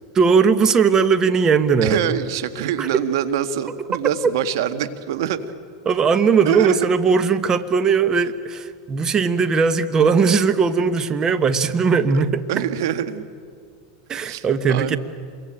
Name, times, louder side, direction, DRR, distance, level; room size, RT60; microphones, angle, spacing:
voice 1, 0.1-2.2 2.8-2.9 4.2-4.3 5.8-12.4 14.1-15.0, right 5 dB, 25° right, 11 dB, 1.3 m, -18 dB
voice 2, 1.8-5.4 6.4-6.8 12.1-12.2 12.5-13.2 14.3-15.0, right 10 dB, 70° right, 10 dB, 1.8 m, -24 dB
27.5 x 23.0 x 9.0 m, 2.1 s
hypercardioid pair, 115°, 2 cm